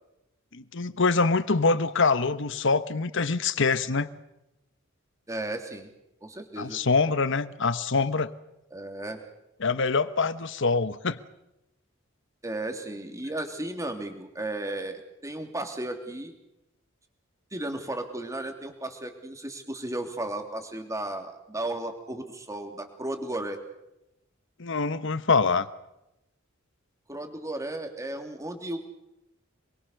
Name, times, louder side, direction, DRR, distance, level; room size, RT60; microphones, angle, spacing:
voice 1, 0.5-4.1 6.6-8.3 9.6-11.2 24.6-25.7, left 4 dB, 65° left, 14 dB, 1.2 m, -25 dB
voice 2, 5.3-5.9 6.2-6.8 8.7-9.2 12.4-16.3 17.5-23.6 27.1-28.8, right 1 dB, 15° right, 5 dB, 3.1 m, -34 dB
27.0 x 22.5 x 6.7 m, 0.91 s
head